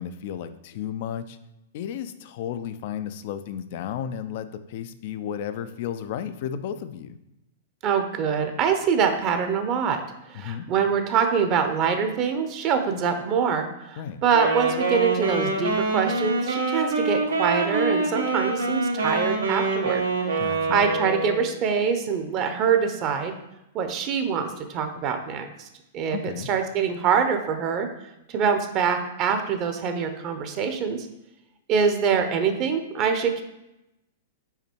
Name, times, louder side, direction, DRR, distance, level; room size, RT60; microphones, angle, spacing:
voice 1, 0.0-1.4 1.7-7.2 10.3-10.7 14.0-14.2 20.4-20.8 26.1-26.5, left 9 dB, 55° left, 11 dB, 0.5 m, -33 dB
voice 2, 7.8-10.0 10.3-20.1 20.7-23.3 23.7-25.7 25.9-27.9 28.3-31.1 31.7-33.4, right 6 dB, 40° right, 7 dB, 0.8 m, -24 dB
Wind instrument woodwind instrument, 14.3-21.5, right 3 dB, 85° right, 1.2 m, -25 dB
5.7 x 4.2 x 4.5 m, 0.89 s
hypercardioid pair, 110°, 0 cm